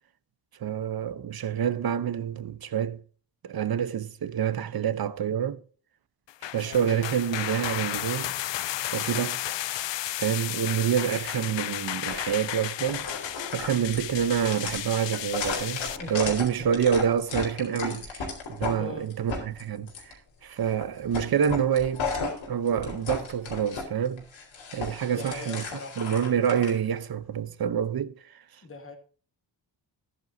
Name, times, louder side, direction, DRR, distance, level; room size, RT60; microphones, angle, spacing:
voice 1, 0.6-3.0 3.4-5.6 6.4-8.3 8.9-9.6 10.2-22.1 22.5-24.2 24.7-25.6 26.0-28.1, right 8 dB, 50° right, 0.9 m, -27 dB
sound 1, 6.3-16.0, left 14 dB, 70° left, 0.6 m, -33 dB
sound 2, 11.1-11.4 12.1-12.5 12.8-18.8 19.1-20.1 20.6-20.8 21.1-23.8 24.2-26.7, left 4 dB, 85° left, 4.4 m, -34 dB
voice 2, 16.0-16.4 17.9-18.0 18.7-19.1 25.1-26.0 28.6-29.0, left 3 dB, 30° left, 2.2 m, -41 dB
13.5 x 11.0 x 2.7 m
wide cardioid pair, 115°, 45 cm